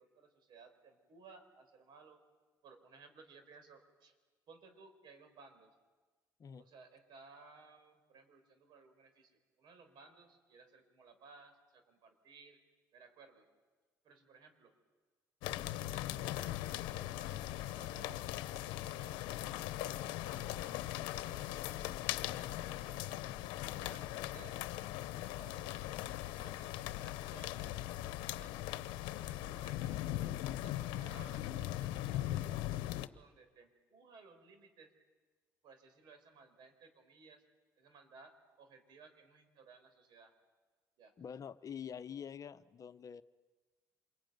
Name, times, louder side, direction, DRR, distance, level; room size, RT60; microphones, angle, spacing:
voice 1, 0.0-2.2 2.6-4.2 4.5-5.8 6.6-12.7 12.9-13.5 14.0-14.8 15.7-19.2 19.7-23.1 23.6-24.6 25.4-25.7 26.0-27.8 28.3-28.6 29.1-30.0 30.6-34.9 35.6-37.4 37.8-40.3 41.0-41.2, right 4 dB, 70° right, 8 dB, 4.7 m, -60 dB
sound 1, 15.4-33.1, left 14 dB, 85° left, 0.9 m, -40 dB
voice 2, 41.2-43.2, left 8 dB, 45° left, 12 dB, 0.9 m, -46 dB
27.0 x 23.0 x 9.4 m, 1.3 s
supercardioid pair, 75°, 8 cm